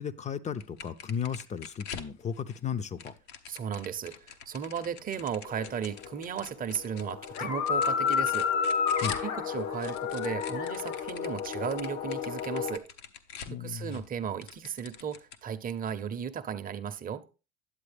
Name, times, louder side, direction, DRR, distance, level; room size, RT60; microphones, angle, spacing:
voice 1, 0.0-3.1 9.0-9.2 13.5-14.0, left 7 dB, 20° left, 0.5 m, -35 dB
sound 1, 0.6-2.6 3.0-9.3 9.6-14.1 14.4-15.4, left 7 dB, 85° left, 1.0 m, -44 dB
voice 2, 3.5-8.5 9.2-12.9 13.6-17.2, right 8 dB, 25° right, 0.7 m, -35 dB
sound 2, 5.5-6.3 6.6-12.8, left 7 dB, 60° left, 0.9 m, -31 dB
9.9 x 7.6 x 3.4 m
supercardioid pair, 100°, 32 cm